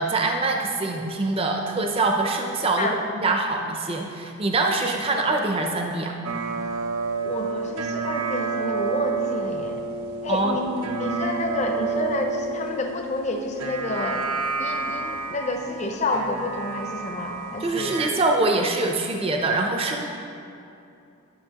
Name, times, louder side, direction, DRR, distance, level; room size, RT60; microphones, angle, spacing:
voice 1, 0.0-6.1 10.3-10.6 17.6-20.0, right 2 dB, 25° right, 2 dB, 0.5 m, -24 dB
sound 1, 6.2-18.1, right 4 dB, 80° right, 0.6 m, -30 dB
voice 2, 7.2-9.8 10.2-10.6 10.9-14.2 14.6-18.0, left 2 dB, 30° left, 3 dB, 0.6 m, -29 dB
11.0 x 6.2 x 2.9 m, 2.7 s
head